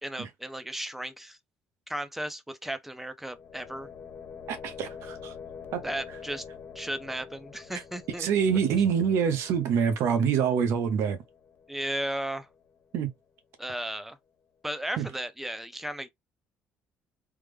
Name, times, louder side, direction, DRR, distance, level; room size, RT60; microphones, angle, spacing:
voice 1, 0.0-1.4 1.9-3.9 5.8-6.5 6.7-8.3 11.7-12.5 13.6-14.2 14.6-16.1, right 1 dB, 5° right, 0.6 m, -35 dB
sound 1, 3.2-13.1, left 6 dB, 50° left, 0.7 m, -47 dB
voice 2, 4.5-5.3 5.7-5.8 7.7-7.8 8.2-11.2 12.9-13.1 15.0-15.1, right 7 dB, 75° right, 0.8 m, -26 dB
3.5 x 2.1 x 3.3 m
cardioid pair, 90°, 5 cm